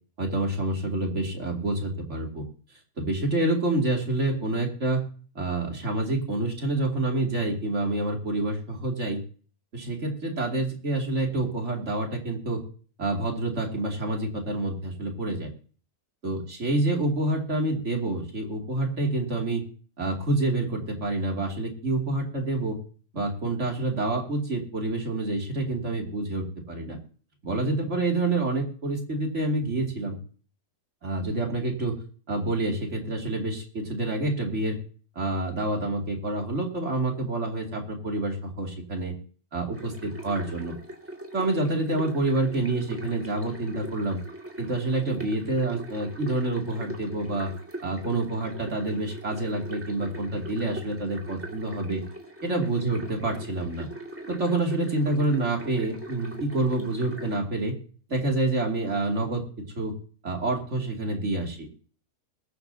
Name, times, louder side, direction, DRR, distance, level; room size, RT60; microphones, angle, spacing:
voice 1, 0.2-2.5 3.0-5.1 5.3-9.2 9.7-12.6 13.0-15.5 16.2-19.6 20.0-22.8 23.1-27.0 27.4-30.2 31.0-32.0 32.3-34.8 35.1-39.1 39.5-40.8 41.3-44.2 44.6-47.5 47.8-52.0 52.4-53.9 54.3-57.8 58.1-59.4 59.8-59.9 60.2-61.7, right 2 dB, 55° right, 1 dB, 3.0 m, -27 dB
sound 1, 39.7-57.4, right 1 dB, 10° right, 2.3 m, -41 dB
22.5 x 9.2 x 2.8 m, 0.42 s
omnidirectional pair, 1.5 m